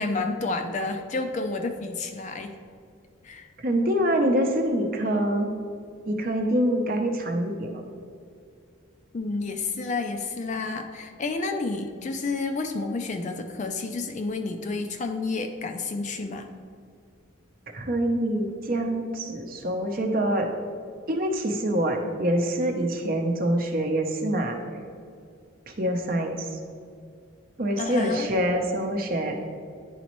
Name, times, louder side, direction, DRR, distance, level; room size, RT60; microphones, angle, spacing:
voice 1, 0.0-2.5 3.2-3.5 9.1-16.5 27.8-28.3, left 3 dB, 35° left, 5 dB, 0.4 m, -30 dB
voice 2, 3.6-5.5 6.1-7.8 17.7-20.5 21.1-24.6 25.7-26.5 27.6-29.5, right 1 dB, 40° right, 3 dB, 0.7 m, -25 dB
10.0 x 4.1 x 3.0 m, 2.3 s
head